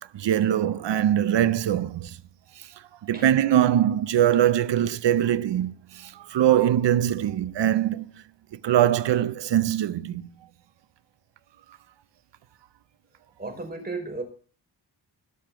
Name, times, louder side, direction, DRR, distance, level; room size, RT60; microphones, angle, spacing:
voice 1, 0.1-2.2 2.6-2.7 3.0-8.1 8.6-10.3, right 11 dB, 75° right, 0.7 m, -22 dB
voice 2, 13.4-14.2, right 3 dB, 20° right, 5.0 m, -34 dB
19.5 x 6.9 x 5.9 m
wide cardioid pair, 120°, 43 cm